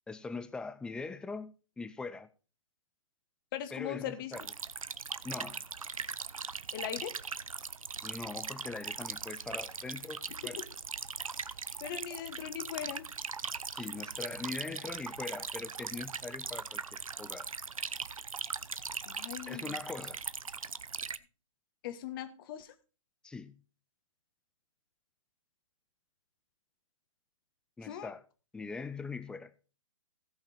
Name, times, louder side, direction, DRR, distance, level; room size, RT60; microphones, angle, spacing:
voice 1, 0.1-2.3 3.7-4.4 5.2-5.6 8.0-10.6 13.7-17.5 19.5-20.2 23.2-23.6 27.8-28.2 28.5-29.5, left 4 dB, 5° left, 0.5 m, -42 dB
voice 2, 3.5-4.3 6.7-7.2 10.4-10.6 11.8-13.1 19.0-19.8 21.8-22.7 27.8-28.1, left 11 dB, 40° left, 1.5 m, -39 dB
sound 1, 4.3-21.2, right 5 dB, 90° right, 0.7 m, -40 dB
17.0 x 5.8 x 4.3 m
hypercardioid pair, 130°, 17 cm